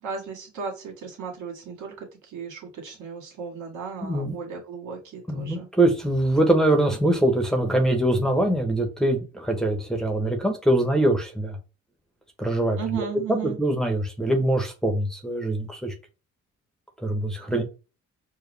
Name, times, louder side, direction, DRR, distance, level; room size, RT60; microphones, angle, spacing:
voice 1, 0.0-5.7 12.8-13.6 17.5-17.6, right 6 dB, 75° right, 2.1 m, -35 dB
voice 2, 4.0-4.3 5.3-11.6 12.4-15.9 17.0-17.6, right 1 dB, ahead, 1.1 m, -23 dB
4.7 x 2.4 x 3.3 m
cardioid pair, 90°, 30 cm